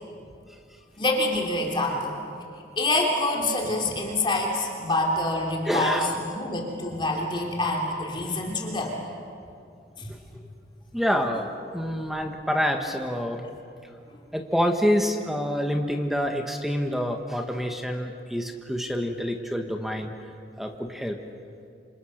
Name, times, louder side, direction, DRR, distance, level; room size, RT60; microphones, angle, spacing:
voice 1, 1.0-2.2 2.8-9.0 10.0-10.1, left 2 dB, 25° left, 0 dB, 3.3 m, -26 dB
voice 2, 3.6-4.1 5.6-6.2 10.9-13.4 14.3-20.1 20.6-21.2, equal, ahead, 4 dB, 1.3 m, -27 dB
28.0 x 26.5 x 6.5 m, 2.4 s
head